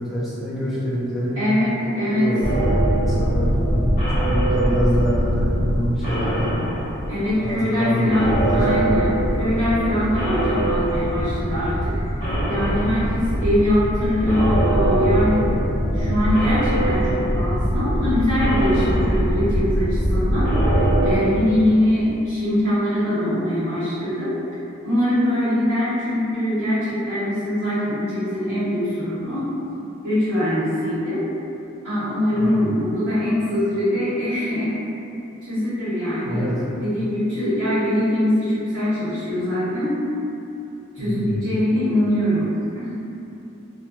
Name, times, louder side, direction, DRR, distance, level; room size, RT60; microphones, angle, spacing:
voice 1, 0.0-1.4 2.1-6.6 7.4-8.8 32.3-32.6 36.2-36.6 41.0-41.4, equal, ahead, -11 dB, 0.5 m, -26 dB
voice 2, 1.3-2.3 7.1-12.0 12.4-15.5 15.9-20.7 21.0-24.3 24.8-29.5 30.0-31.2 31.8-34.7 35.4-40.0 40.9-42.9, left 1 dB, 70° right, -15 dB, 1.5 m, -22 dB
sound 1, 2.4-7.7 8.0-21.2, right 1 dB, 35° left, 0.7 m, -22 dB
2.8 x 2.4 x 2.2 m, 2.8 s
head